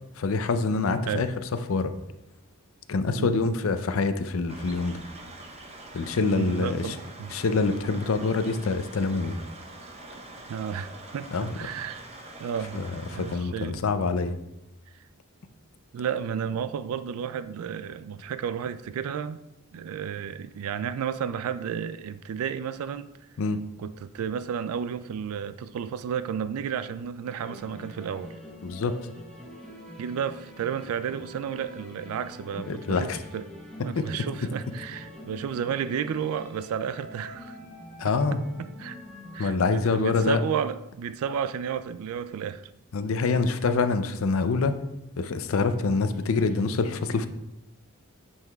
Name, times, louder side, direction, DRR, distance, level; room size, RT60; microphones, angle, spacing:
voice 1, 0.2-1.3 1.7-1.9 2.9-5.0 5.9-7.0 7.3-9.4 11.3-11.5 12.7-12.8 13.1-14.4 23.4-23.6 28.6-28.9 32.7-33.2 34.0-34.1 38.0-38.4 39.4-40.4 42.9-44.8 45.2-47.3, left 4 dB, 65° left, 9 dB, 0.5 m, -25 dB
voice 2, 3.0-3.4 6.3-7.3 10.5-12.0 12.4-13.8 15.9-19.4 19.7-23.1 23.8-28.4 30.0-33.4 33.8-37.6 38.0-39.0 39.3-42.7, right 7 dB, 80° right, 14 dB, 0.3 m, -32 dB
sound 1, 4.5-13.4, right 2 dB, 30° right, 0.8 m, -44 dB
sound 2, 27.2-39.5, left 1 dB, 5° left, 1.1 m, -45 dB
8.9 x 5.6 x 2.3 m, 0.90 s
head